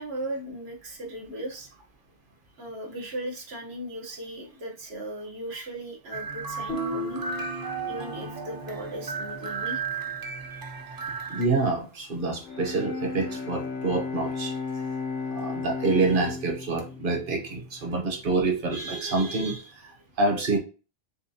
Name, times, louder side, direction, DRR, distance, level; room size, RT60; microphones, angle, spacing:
voice 1, 0.0-1.7 2.6-7.2 7.9-10.0 10.5-10.7, right 1 dB, 85° right, 0 dB, 1.4 m, -37 dB
sound 1, 6.1-11.5, right 5 dB, 35° right, 0.4 m, -35 dB
Guitar, 6.7-10.3, equal, 85° left, 2.0 m, -37 dB
voice 2, 11.3-14.6 15.3-20.6, right 3 dB, 60° right, 3 dB, 1.2 m, -27 dB
Bowed string instrument, 12.4-18.4, left 4 dB, 55° left, 0.8 m, -34 dB
6.7 x 2.3 x 2.8 m, 0.34 s
omnidirectional pair, 1.0 m